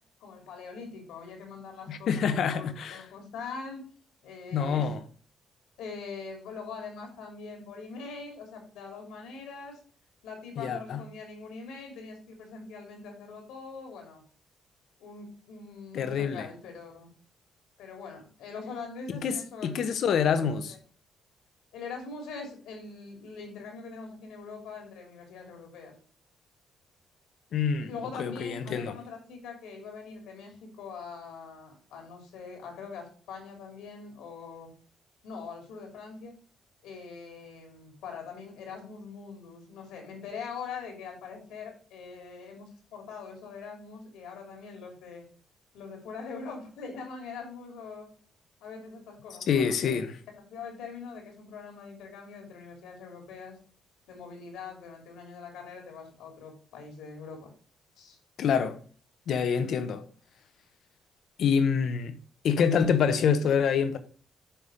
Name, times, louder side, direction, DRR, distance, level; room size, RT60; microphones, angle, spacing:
voice 1, 0.2-3.8 4.2-4.9 5.8-9.8 10.2-14.2 15.0-17.1 17.8-19.8 20.1-20.8 21.7-25.9 27.8-34.7 35.2-36.3 36.8-45.2 45.7-48.1 48.6-50.0 50.5-53.5 54.1-57.5 58.0-58.2 59.6-59.9, left 4 dB, 90° left, 2.8 m, -43 dB
voice 2, 1.9-3.0 4.5-5.0 10.6-11.0 15.9-16.5 19.2-20.7 27.5-29.0 49.5-50.2 58.4-58.8 59.3-60.0 61.4-62.1 62.4-64.0, left 7 dB, 70° left, 1.0 m, -26 dB
10.0 x 3.5 x 5.0 m
cardioid pair, 90°, 0 cm